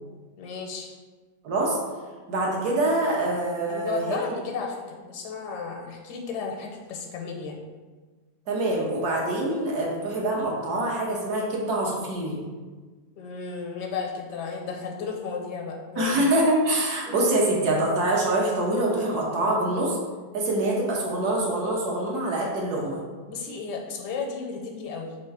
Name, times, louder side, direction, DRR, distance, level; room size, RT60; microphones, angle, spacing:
voice 1, 0.4-0.9 3.7-7.6 13.2-16.2 23.3-25.2, left 5 dB, 80° left, 1 dB, 1.3 m, -34 dB
voice 2, 1.4-1.8 2.3-4.2 8.5-12.4 16.0-20.0 20.3-23.0, right 1 dB, 70° right, -2 dB, 1.4 m, -25 dB
3.8 x 3.1 x 4.6 m, 1.4 s
omnidirectional pair, 1.8 m